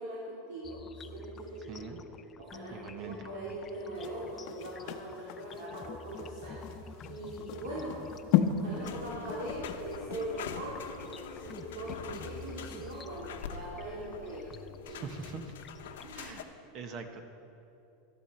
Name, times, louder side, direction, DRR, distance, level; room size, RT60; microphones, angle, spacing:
voice 1, 0.0-1.9 2.4-7.9 8.5-14.5 14.9-15.0 16.0-16.4, right 1 dB, 85° right, -7 dB, 2.9 m, -41 dB
sound 1, 0.6-16.4, left 5 dB, 25° left, 0.5 m, -50 dB
voice 2, 2.7-3.6 14.9-15.5 16.1-16.5 16.7-17.2, right 5 dB, 45° right, 7 dB, 1.0 m, -43 dB
sound 2, 4.0-12.5 12.9-13.0, left 9 dB, 60° left, 0.7 m, -35 dB
sound 3, 8.8-16.4, left 7 dB, 85° left, 0.9 m, -45 dB
13.0 x 11.5 x 4.4 m, 2.8 s
supercardioid pair, 120°, 0 cm